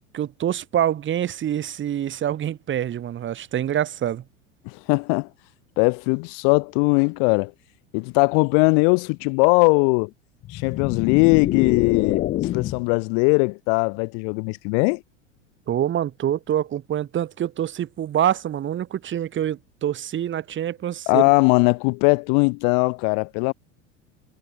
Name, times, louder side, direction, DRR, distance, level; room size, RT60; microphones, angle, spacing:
voice 1, 0.1-4.2 15.7-21.2, right 10 dB, 30° right, 1.6 m, -26 dB
voice 2, 4.7-5.3 5.8-7.5 7.9-10.1 10.5-15.0 21.1-23.5, left 40 dB or more, 55° left, 2.2 m, -20 dB
sound 1, 10.4-13.0, left 14 dB, 25° left, 0.4 m, -26 dB
hypercardioid pair, 90°, 39 cm